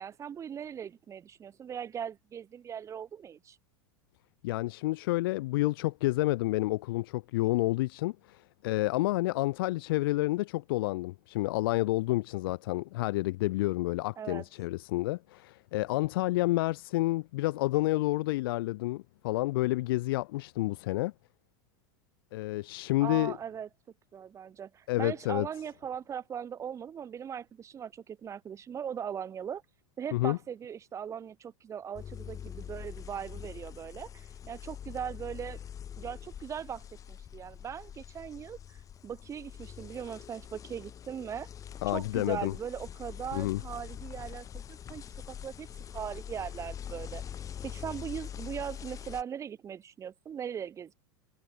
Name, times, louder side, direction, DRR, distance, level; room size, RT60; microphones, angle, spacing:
voice 1, 0.0-3.6 14.2-14.4 23.0-23.7 24.1-29.6 30.0-35.6 36.0-38.8 39.0-41.5 41.9-45.7 45.9-47.2 47.6-50.9, right 8 dB, 25° right, 3.2 m, -39 dB
voice 2, 4.4-21.1 22.3-23.4 24.9-25.5 30.1-30.4 41.8-42.5 43.3-43.6, left 19 dB, 70° left, 0.4 m, -29 dB
sound 1, 31.9-49.2, left 9 dB, 25° left, 5.0 m, -44 dB
supercardioid pair, 130°, 12 cm